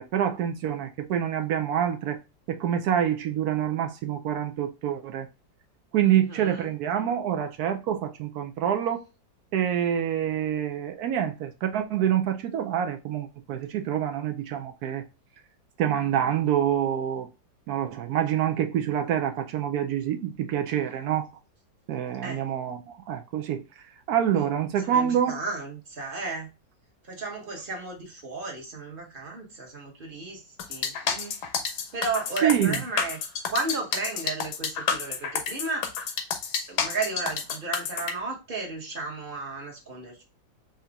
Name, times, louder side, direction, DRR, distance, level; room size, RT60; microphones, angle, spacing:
voice 1, 0.0-2.2 2.5-5.3 5.9-9.0 9.5-15.0 15.8-17.3 17.7-21.3 21.9-25.4 32.4-32.8, right 10 dB, 70° right, 0.9 m, -26 dB
voice 2, 6.0-6.7 20.7-20.9 22.2-22.4 24.3-26.5 27.0-31.4 31.9-33.2 33.5-35.9 36.7-40.2, right 3 dB, 35° right, 1.1 m, -34 dB
sound 1, 30.6-38.1, left 6 dB, 65° left, 1.2 m, -29 dB
5.0 x 2.8 x 3.4 m
omnidirectional pair, 2.0 m